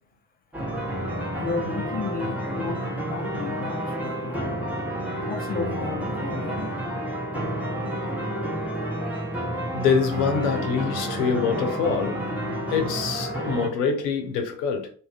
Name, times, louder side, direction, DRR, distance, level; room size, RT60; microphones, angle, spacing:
sound 1, 0.5-13.7, right 1 dB, 5° right, 0.7 m, -30 dB
voice 1, 1.4-4.5 5.3-6.7, left 5 dB, 20° left, 0.4 m, -33 dB
voice 2, 9.7-12.3 12.7-14.9, left 6 dB, 75° left, 0.6 m, -25 dB
2.6 x 2.3 x 2.2 m
figure-of-eight pair, 45°, 49 cm